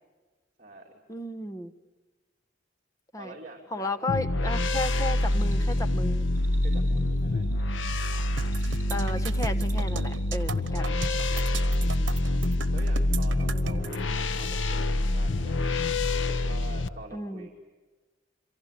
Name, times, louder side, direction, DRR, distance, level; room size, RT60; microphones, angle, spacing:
voice 1, 0.6-1.0 3.2-4.5 6.6-7.4 11.8-12.2 12.7-15.5 16.1-17.5, right 2 dB, 35° right, -2 dB, 3.0 m, -46 dB
voice 2, 1.1-1.7 3.1-3.4 3.7-6.3 8.1-8.3 8.9-11.0 13.4-14.1 17.1-17.5, left 2 dB, 15° left, 8 dB, 1.1 m, -34 dB
sound 1, 4.1-16.9, left 1 dB, 85° left, 0.9 m, -26 dB
sound 2, 5.2-11.6, right 4 dB, 10° right, 6.3 m, -55 dB
sound 3, 8.4-14.0, right 5 dB, 80° right, 1.2 m, -37 dB
27.0 x 24.5 x 8.5 m, 1.3 s
head